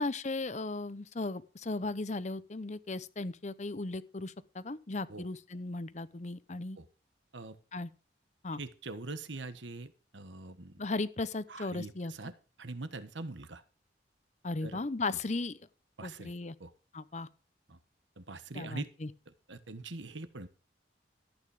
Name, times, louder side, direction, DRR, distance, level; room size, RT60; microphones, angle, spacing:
voice 1, 0.0-6.8 7.7-7.9 8.4-8.6 10.8-12.1 14.4-15.6 16.0-16.5 16.9-17.3 18.5-19.1, left 3 dB, 40° left, 0.7 m, -36 dB
voice 2, 8.6-10.8 11.5-13.6 14.6-14.8 16.0-16.3 16.6-16.7 17.7-17.8 18.2-18.9 19.5-20.5, right 3 dB, 85° right, 1.4 m, -43 dB
14.0 x 8.9 x 5.0 m
head